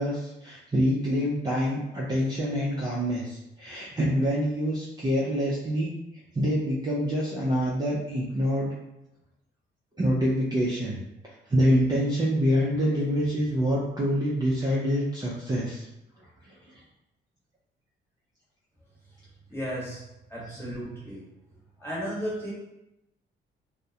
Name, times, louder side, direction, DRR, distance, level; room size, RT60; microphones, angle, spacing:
voice 1, 0.0-5.9 6.3-8.7 10.0-15.9 16.4-16.5 20.5-20.6, equal, 20° right, -6 dB, 0.5 m, -26 dB
voice 2, 19.5-20.0 20.3-21.3 21.8-22.5, equal, 10° left, -6 dB, 1.1 m, -34 dB
2.3 x 2.0 x 2.7 m, 0.89 s
cardioid pair, 90°, 20 cm